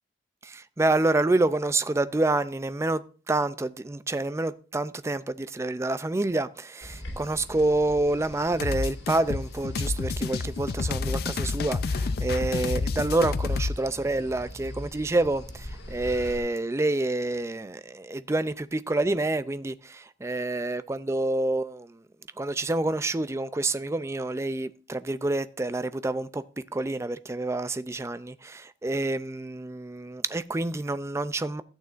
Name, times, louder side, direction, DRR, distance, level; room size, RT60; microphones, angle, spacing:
voice 1, 0.4-22.0 22.4-31.6, right 2 dB, 15° right, 0.4 m, -28 dB
sound 1, 6.8-16.4, left 1 dB, 85° left, 2.1 m, -42 dB
sound 2, 8.6-13.8, left 4 dB, 60° left, 0.5 m, -29 dB
13.5 x 9.0 x 2.5 m
head